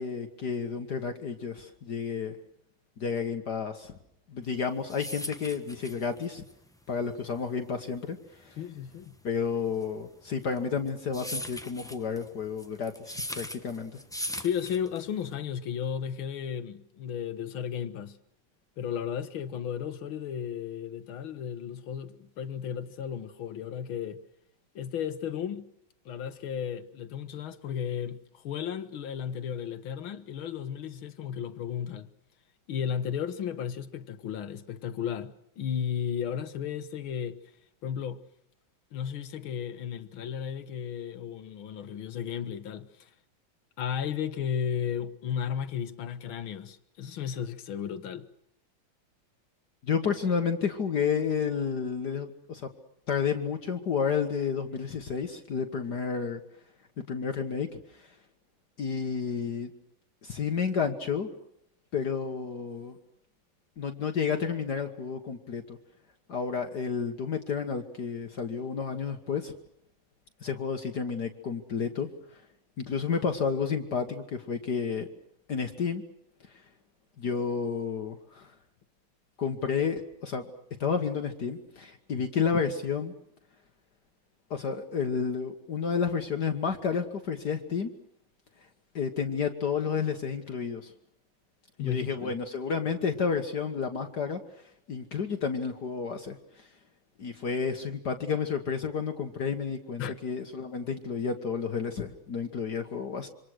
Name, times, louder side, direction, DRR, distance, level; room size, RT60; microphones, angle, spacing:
voice 1, 0.0-2.4 3.0-3.9 4.3-6.4 6.9-8.6 9.2-13.9 49.8-52.7 53.1-56.4 57.1-58.1 58.8-59.7 60.2-61.3 61.9-63.0 63.8-65.8 66.3-69.5 70.4-72.4 72.8-75.1 75.5-76.0 77.2-78.5 79.4-80.5 80.8-83.1 84.5-88.0 88.9-90.9 91.8-94.4 94.9-96.7 97.2-103.3, left 6 dB, 55° left, 2.0 m, -31 dB
sound 1, 4.5-15.3, left 1 dB, 5° left, 0.8 m, -40 dB
voice 2, 8.6-9.2 14.3-18.2 18.8-24.2 24.8-25.7 26.1-32.1 32.7-37.4 37.8-38.2 38.9-43.1 43.8-48.3 91.8-92.4 100.0-100.2, left 8 dB, 85° left, 2.1 m, -34 dB
27.0 x 25.5 x 6.4 m
omnidirectional pair, 2.2 m